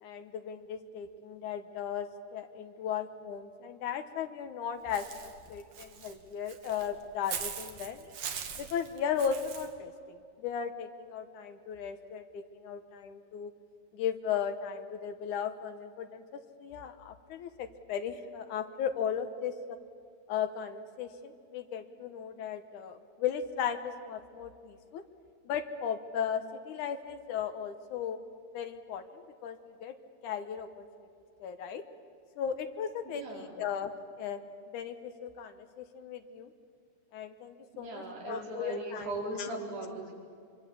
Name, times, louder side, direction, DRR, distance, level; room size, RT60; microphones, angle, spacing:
voice 1, 0.0-8.0 8.6-13.5 13.9-19.8 20.3-25.0 25.5-28.2 28.5-29.9 30.2-31.1 31.4-31.8 32.4-34.4 34.7-36.5 37.1-39.1 39.4-39.5, left 8 dB, 70° left, 8 dB, 2.0 m, -36 dB
Walk footsteps / Bird, 4.9-9.7, right 7 dB, 50° right, 2.1 m, -41 dB
voice 2, 33.1-33.6 37.7-40.1, right 2 dB, 75° right, -3 dB, 7.0 m, -39 dB
24.5 x 24.0 x 8.5 m, 2.4 s
omnidirectional pair, 4.7 m